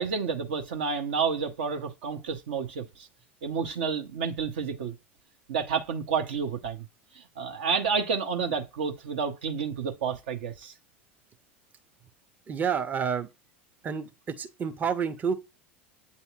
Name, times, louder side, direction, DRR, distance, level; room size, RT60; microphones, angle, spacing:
voice 1, 0.0-3.1 3.4-4.9 5.5-6.9 7.1-10.7, right 6 dB, 65° right, 0.6 m, -30 dB
voice 2, 12.5-13.3 13.8-14.1 14.4-15.3, right 6 dB, 25° right, 0.6 m, -29 dB
8.2 x 2.8 x 2.3 m
figure-of-eight pair, 75°, 6 cm